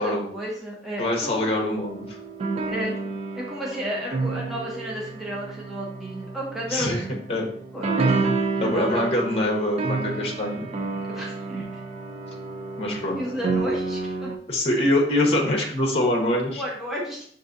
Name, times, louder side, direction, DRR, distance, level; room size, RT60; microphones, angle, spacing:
voice 1, 0.0-1.5 2.7-3.0 3.3-7.4 7.7-8.1 8.6-9.3 11.1-11.7 13.1-14.3 16.5-17.3, equal, ahead, -5 dB, 0.7 m, -32 dB
voice 2, 1.0-2.2 6.7-7.0 7.3-7.5 8.6-10.6 12.8-13.2 14.5-16.6, left 1 dB, 35° left, 0 dB, 0.9 m, -24 dB
sound 1, 1.7-14.4, right 3 dB, 35° right, 0.4 m, -30 dB
6.0 x 2.6 x 2.5 m, 0.62 s
head